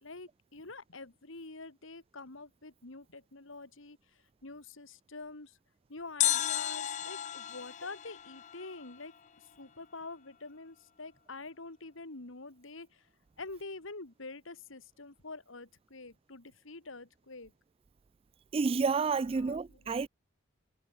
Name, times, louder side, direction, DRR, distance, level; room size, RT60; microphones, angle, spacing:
voice 1, 0.0-4.0 4.4-5.5 5.9-9.1 9.6-12.9 13.4-17.5 19.3-20.0, left 3 dB, 70° left, 2.1 m, -46 dB
sound 1, 6.2-9.3 9.5-9.6, left 12 dB, 35° left, 0.5 m, -34 dB
voice 2, 18.5-20.1, right 4 dB, 30° right, 0.3 m, -30 dB
head